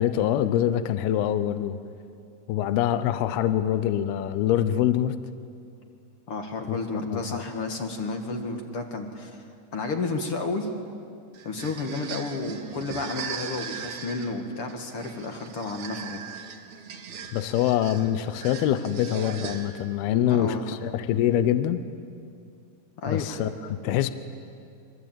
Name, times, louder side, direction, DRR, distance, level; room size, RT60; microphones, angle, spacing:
voice 1, 0.0-1.8 2.5-5.2 6.7-6.8 7.1-7.4 17.3-21.8 23.1-23.5 23.8-24.1, left 11 dB, 75° left, 12 dB, 2.7 m, -24 dB
voice 2, 6.3-9.4 9.7-10.7 11.4-16.2 20.1-20.8 23.0-23.4, left 3 dB, 50° left, 4 dB, 1.8 m, -31 dB
sound 1, 11.3-20.0, right 6 dB, 50° right, 2.6 m, -39 dB
27.0 x 24.5 x 8.9 m, 2.4 s
omnidirectional pair, 4.8 m